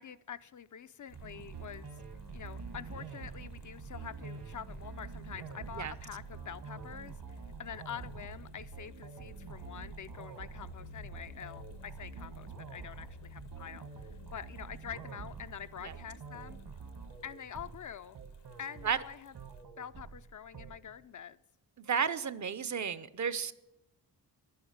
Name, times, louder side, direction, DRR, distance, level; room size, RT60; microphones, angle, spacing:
voice 1, 0.0-1.9 2.3-16.6 17.2-18.2 18.6-19.3 19.8-21.4, left 8 dB, 50° left, 12 dB, 0.5 m, -46 dB
sound 1, 1.1-19.6, left 7 dB, 75° left, 1.2 m, -56 dB
sound 2, 1.1-20.8, right 5 dB, 65° right, 1.3 m, -47 dB
voice 2, 21.8-23.5, right 7 dB, 45° right, 15 dB, 0.6 m, -32 dB
10.5 x 9.6 x 8.0 m, 0.96 s
cardioid pair, 95°, 41 cm